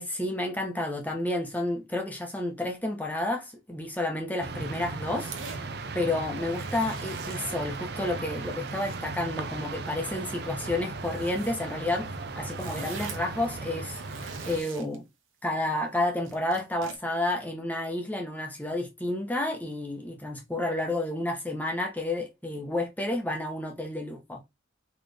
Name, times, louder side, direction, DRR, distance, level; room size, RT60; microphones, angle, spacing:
voice 1, 0.0-5.6 5.9-12.1 12.4-15.0 15.4-24.4, left 1 dB, 10° left, 0.9 m, -31 dB
sound 1, 4.4-14.6, right 3 dB, 55° right, 0.5 m, -37 dB
sound 2, 5.2-5.6 6.2-8.1 8.4-9.1 9.6-9.8 10.9-11.6 11.9-12.0 12.3-13.3 13.8-15.0 16.2-17.0, right 5 dB, 85° right, 1.1 m, -44 dB
4.3 x 3.2 x 3.3 m
head